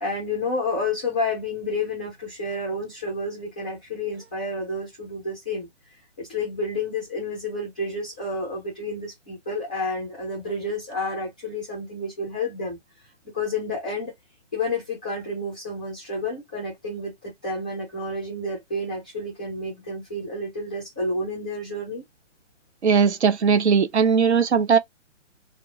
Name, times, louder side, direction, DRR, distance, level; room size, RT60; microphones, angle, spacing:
voice 1, 0.0-12.8 13.3-14.1 14.5-22.0, left 2 dB, 5° left, 0.4 m, -30 dB
voice 2, 22.8-24.8, right 6 dB, 65° right, 0.8 m, -19 dB
4.4 x 2.0 x 2.6 m
figure-of-eight pair, 140°, 37 cm